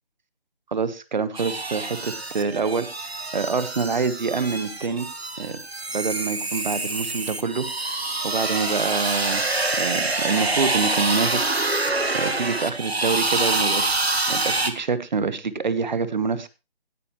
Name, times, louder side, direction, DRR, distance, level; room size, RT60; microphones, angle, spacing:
voice 1, 0.7-5.1 5.4-5.6 5.9-9.4 9.8-11.6 12.1-16.5, right 5 dB, 45° right, 14 dB, 1.4 m, -26 dB
sound 1, 1.4-14.7, right 2 dB, 85° right, 1.9 m, -26 dB
17.0 x 9.5 x 3.2 m, 0.30 s
figure-of-eight pair, 160°, 31 cm